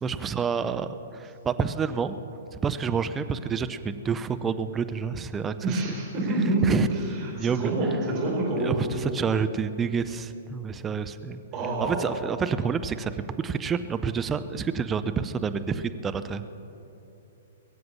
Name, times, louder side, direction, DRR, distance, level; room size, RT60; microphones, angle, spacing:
voice 1, 0.0-2.2 2.5-5.5 6.6-6.9 7.3-7.7 8.6-11.4 11.8-16.4, right 6 dB, 15° right, 11 dB, 0.6 m, -28 dB
voice 2, 5.6-8.8 11.5-12.1, right 2 dB, 30° right, -2 dB, 4.5 m, -27 dB
21.5 x 7.8 x 7.3 m, 2.9 s
figure-of-eight pair, 115°, 0 cm